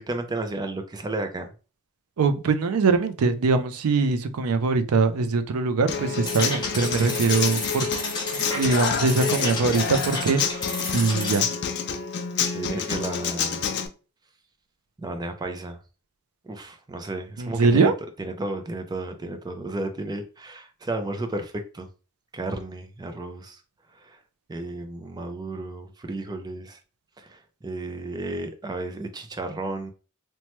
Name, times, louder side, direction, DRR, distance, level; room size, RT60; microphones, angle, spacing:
voice 1, 0.0-1.5 12.4-13.6 15.0-15.8 16.4-17.9 18.2-21.9 22.3-23.6 24.0-24.2 24.5-26.8 27.2-29.9, right 2 dB, 20° right, 0.4 m, -33 dB
voice 2, 2.2-7.9 8.5-10.4 10.9-11.5 17.4-17.9, right 4 dB, 80° right, 0.4 m, -22 dB
Human voice / Acoustic guitar, 5.9-13.9, left 6 dB, 50° left, 0.4 m, -28 dB
sound 1, 6.3-11.4, left 3 dB, 20° left, 0.7 m, -31 dB
3.0 x 2.1 x 2.9 m
head